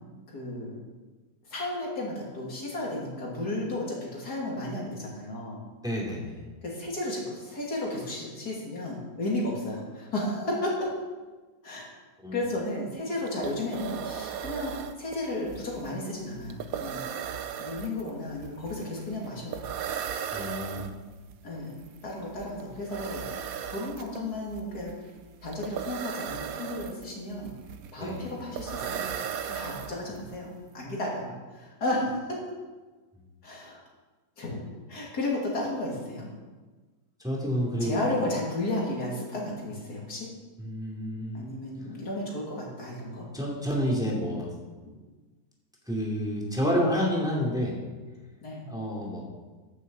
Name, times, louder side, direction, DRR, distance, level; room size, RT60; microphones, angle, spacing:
voice 1, 0.3-0.8 1.5-5.6 6.6-10.9 11.6-12.0 12.3-17.0 17.6-19.6 21.4-21.8 22.0-24.9 25.4-27.5 27.9-29.2 29.5-32.4 33.4-33.8 34.4-34.6 34.9-36.3 37.8-40.3 41.3-43.3 48.4-48.6, left 1 dB, 75° left, -3 dB, 3.1 m, -33 dB
voice 2, 5.8-6.4 12.2-12.4 20.3-20.9 28.0-28.3 37.2-38.3 40.6-41.5 43.3-44.5 45.9-47.8 48.7-49.2, equal, ahead, -3 dB, 2.6 m, -29 dB
sound 1, 13.0-13.1 13.3-30.4, right 8 dB, 70° right, 1.1 m, -37 dB
10.5 x 7.0 x 7.5 m, 1.3 s
omnidirectional pair, 1.7 m